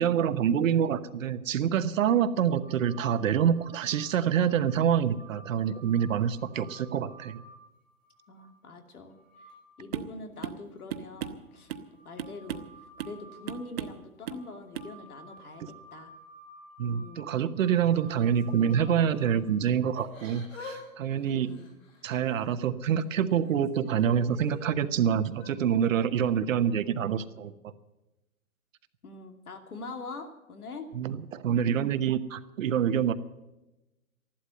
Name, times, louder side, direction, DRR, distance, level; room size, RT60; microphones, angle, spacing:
voice 1, 0.0-7.4 16.8-21.5 22.0-27.5 30.9-33.1, right 8 dB, 65° right, 12 dB, 1.1 m, -26 dB
sound 1, 2.6-8.5 9.0-9.8 10.1-10.2 11.3-19.8 21.9-22.0, right 2 dB, 20° left, 2.6 m, -53 dB
voice 2, 8.3-9.5 9.8-12.7 13.0-15.6 15.9-16.1 16.9-17.3 21.3-21.7 29.0-30.9, left 3 dB, 90° left, 6 dB, 2.7 m, -44 dB
sound 2, 9.9-10.2 10.4-10.6 10.9-11.9 12.2-12.7 13.0-13.2 13.5-14.0 14.3-14.5 14.7-14.9, right 9 dB, 45° right, 1.1 m, -36 dB
Yell / Crying sobbing, 18.1-19.3 19.9-20.8 21.1-22.5 23.0-24.6 25.3-25.5, left 3 dB, 65° left, 6.9 m, -47 dB
14.5 x 12.0 x 7.8 m, 0.99 s
hypercardioid pair, 150°, 43 cm